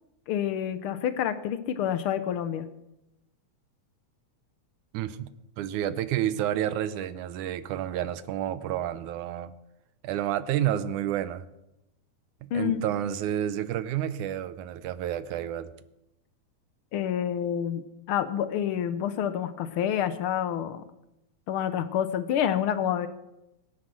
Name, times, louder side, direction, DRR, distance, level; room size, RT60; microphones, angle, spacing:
voice 1, 0.3-2.7 12.5-12.8 16.9-20.8 21.5-23.1, left 9 dB, 80° left, 11 dB, 1.2 m, -28 dB
voice 2, 4.9-5.3 5.6-9.5 10.0-11.5 12.4-15.7, right 11 dB, 80° right, 13 dB, 2.1 m, -30 dB
20.5 x 9.8 x 6.1 m, 0.90 s
omnidirectional pair, 3.6 m